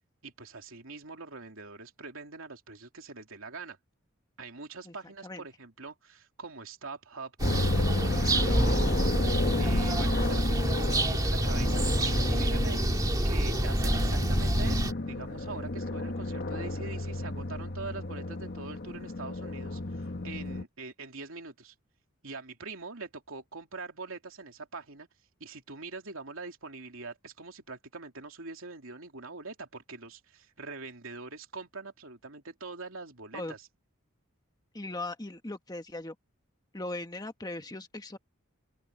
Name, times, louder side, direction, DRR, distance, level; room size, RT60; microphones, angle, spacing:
voice 1, 0.2-3.8 4.4-9.2 9.6-12.8 13.2-21.7 22.2-25.1 25.4-33.6, right 3 dB, 70° right, 3.1 m, -43 dB
sound 1, 7.4-20.6, left 2 dB, 50° left, 1.2 m, -33 dB
sound 2, 7.4-14.9, right 1 dB, 20° right, 2.0 m, -27 dB
voice 2, 34.7-36.1 36.7-38.2, left 2 dB, 20° left, 1.4 m, -38 dB
open air
head